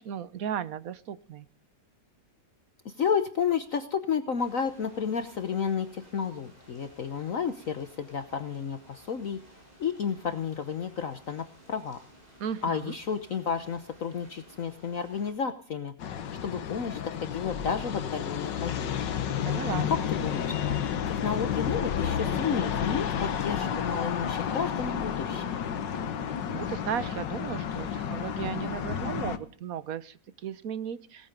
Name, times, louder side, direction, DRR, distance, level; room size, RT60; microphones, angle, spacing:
voice 1, 0.0-1.5 12.4-12.9 19.4-19.9 26.5-31.3, right 8 dB, 60° right, 15 dB, 1.2 m, -35 dB
voice 2, 2.8-9.4 9.8-12.0 12.6-15.9 16.4-19.0 19.9-20.5 21.1-25.6, left 6 dB, 50° left, 9 dB, 1.3 m, -31 dB
sound 1, 4.4-15.3, equal, 20° right, 7.2 m, -55 dB
sound 2, 16.0-29.4, left 8 dB, 75° left, 1.8 m, -31 dB
sound 3, 17.8-27.4 27.8-28.8 29.6-29.8, left 1 dB, 10° left, 6.4 m, -55 dB
18.5 x 14.0 x 5.2 m, 0.43 s
omnidirectional pair, 1.9 m